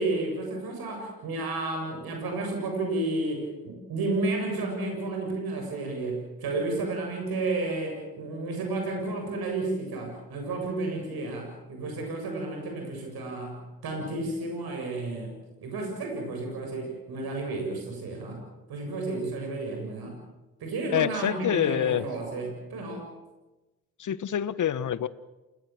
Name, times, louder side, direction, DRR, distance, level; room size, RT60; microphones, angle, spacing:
voice 1, 0.0-15.3 15.6-18.4 18.7-20.2 20.6-23.1, right 2 dB, 60° right, 2 dB, 7.6 m, -32 dB
voice 2, 20.9-22.1 24.0-25.1, left 10 dB, 45° left, 16 dB, 1.3 m, -26 dB
28.5 x 19.0 x 7.6 m, 1.1 s
hypercardioid pair, 45°, 41 cm